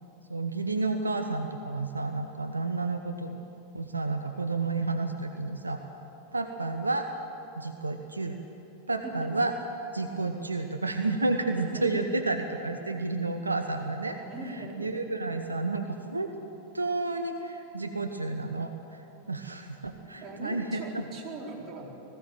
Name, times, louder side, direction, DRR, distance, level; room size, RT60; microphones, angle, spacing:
voice 1, 0.3-3.4 3.7-5.8 6.3-7.1 7.6-8.4 8.9-9.5 9.9-14.2 14.8-16.3 16.7-19.0 19.3-21.0, right 3 dB, 80° right, 6 dB, 1.0 m, -31 dB
voice 2, 11.5-12.1 14.2-14.9 20.2-21.9, right 2 dB, 25° right, -3 dB, 4.3 m, -40 dB
20.0 x 15.5 x 9.3 m, 3.0 s
figure-of-eight pair, 90°, 0 cm